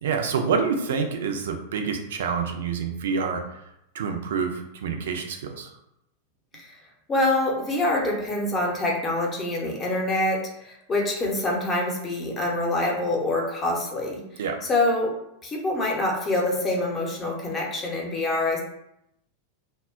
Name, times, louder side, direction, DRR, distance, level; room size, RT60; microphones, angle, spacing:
voice 1, 0.0-3.4 3.9-5.7 14.4-14.6, right 5 dB, 60° right, 4 dB, 0.4 m, -27 dB
voice 2, 7.1-15.1 15.4-18.6, left 2 dB, 20° left, -1 dB, 0.7 m, -25 dB
2.2 x 2.0 x 3.5 m, 0.81 s
figure-of-eight pair, 90°, 0 cm